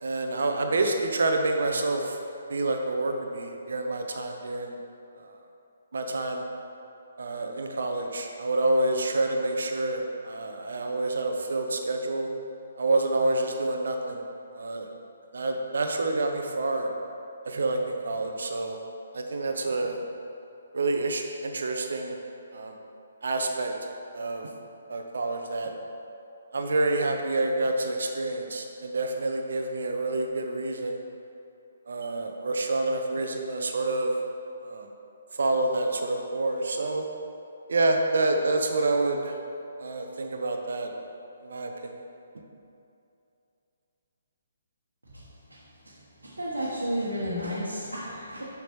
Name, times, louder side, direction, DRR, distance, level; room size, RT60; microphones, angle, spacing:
voice 1, 0.0-2.2 2.5-4.8 5.2-5.3 5.9-6.4 7.2-12.3 12.8-14.2 14.5-14.9 15.3-16.9 17.4-18.8 19.1-20.0 20.7-22.2 22.5-22.7 23.2-23.7 24.1-24.5 24.9-25.7 26.5-31.0 31.9-34.1 34.6-34.9 35.3-37.0 37.7-39.4 39.8-40.9 41.4-42.0, right 2 dB, 60° right, 4 dB, 0.6 m, -28 dB
voice 2, 46.2-48.4, equal, 75° right, -7 dB, 1.2 m, -32 dB
7.0 x 5.8 x 3.1 m, 2.7 s
figure-of-eight pair, 135°, 0 cm